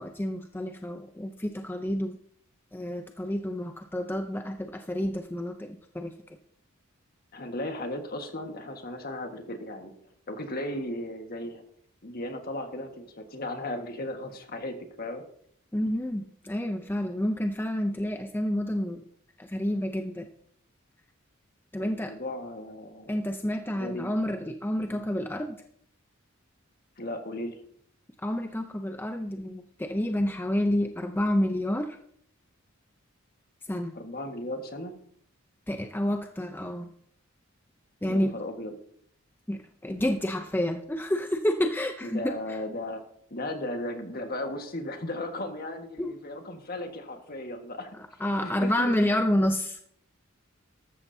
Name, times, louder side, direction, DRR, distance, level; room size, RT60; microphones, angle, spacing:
voice 1, 0.0-2.2 2.7-6.1 15.7-19.0 19.4-20.3 21.7-22.1 23.1-25.6 28.2-32.0 33.7-33.9 35.7-36.9 38.0-38.4 39.5-42.6 46.0-46.1 48.2-49.9, left 1 dB, 10° left, 5 dB, 0.6 m, -29 dB
voice 2, 7.3-9.9 10.3-11.6 12.0-15.2 21.8-23.1 23.7-24.1 24.9-25.0 27.0-27.6 33.9-34.9 38.1-38.7 42.0-43.0 43.3-48.0 48.4-48.9, left 1 dB, 45° left, 5 dB, 1.6 m, -36 dB
13.5 x 13.0 x 2.7 m, 0.64 s
head